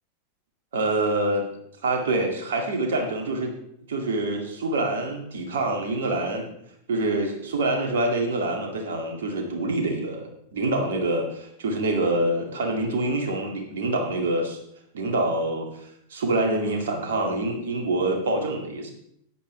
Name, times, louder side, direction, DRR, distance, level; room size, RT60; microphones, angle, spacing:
voice 1, 0.7-1.5 1.8-3.5 3.9-6.5 6.9-14.6 14.9-18.9, right 2 dB, 60° right, 2 dB, 2.2 m, -26 dB
13.5 x 9.9 x 3.3 m, 0.73 s
figure-of-eight pair, 90°, 0 cm